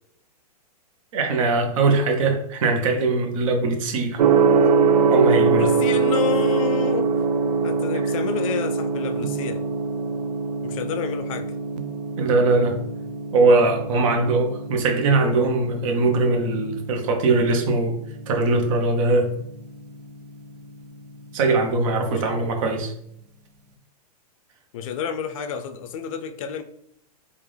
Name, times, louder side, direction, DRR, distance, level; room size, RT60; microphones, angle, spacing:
voice 1, 1.1-4.2 5.1-5.7 12.2-12.8 13.3-18.0 18.3-19.3 21.3-22.9, right 3 dB, 55° right, 0.9 m, -21 dB
Gong, 4.2-22.1, right 5 dB, 85° right, 0.5 m, -24 dB
voice 2, 5.5-7.3 7.6-9.6 10.6-11.6 22.2-22.5 24.7-26.6, left 8 dB, 55° left, 0.5 m, -30 dB
3.6 x 2.5 x 3.2 m
hypercardioid pair, 135°, 20 cm